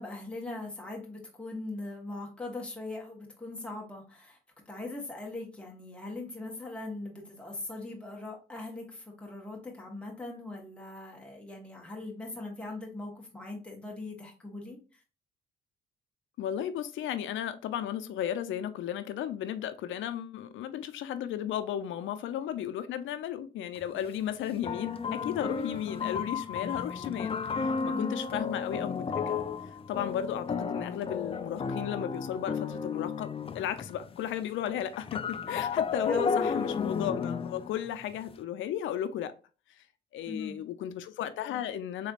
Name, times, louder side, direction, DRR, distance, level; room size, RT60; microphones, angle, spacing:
voice 1, 0.0-4.4 4.7-14.8 23.9-24.0 27.8-28.2 36.1-36.5 40.3-40.6, left 2 dB, 5° left, 1.3 m, -40 dB
voice 2, 16.4-29.4 29.9-33.3 33.5-39.3 39.8-39.9 40.1-42.1, left 10 dB, 80° left, 0.5 m, -34 dB
sound 1, 23.7-23.8 24.6-34.2 34.4-38.3, left 5 dB, 30° left, 0.4 m, -33 dB
3.9 x 3.2 x 2.4 m
cardioid pair, 90°, 20 cm